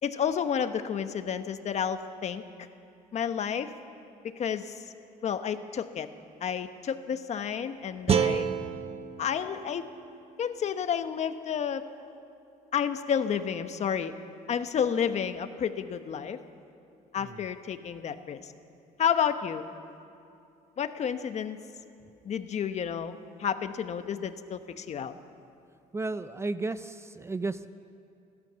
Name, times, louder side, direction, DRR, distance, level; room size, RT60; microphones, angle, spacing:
voice 1, 0.0-2.4 3.1-3.7 4.2-4.8 5.2-6.1 6.4-8.5 9.2-9.9 10.4-11.8 12.7-14.1 14.5-16.4 17.1-18.5 19.0-19.7 20.8-21.6 22.2-25.1, left 8 dB, 45° left, 9 dB, 1.2 m, -30 dB
sound 1, 8.1-11.2, right 7 dB, 40° right, 0.9 m, -31 dB
voice 2, 25.9-27.7, right 3 dB, 15° right, 12 dB, 0.6 m, -33 dB
30.0 x 12.5 x 7.0 m, 2.6 s
cardioid pair, 115°, 16 cm